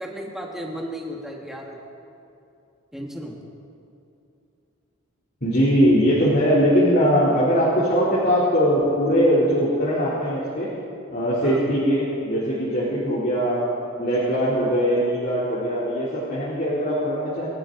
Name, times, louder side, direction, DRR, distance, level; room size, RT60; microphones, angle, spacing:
voice 1, 0.0-1.8 2.9-3.4 11.4-11.6, equal, ahead, -1 dB, 1.6 m, -34 dB
voice 2, 5.4-10.7 11.1-13.7 14.0-17.5, equal, 45° left, -9 dB, 3.1 m, -21 dB
25.5 x 13.0 x 3.9 m, 2.7 s
head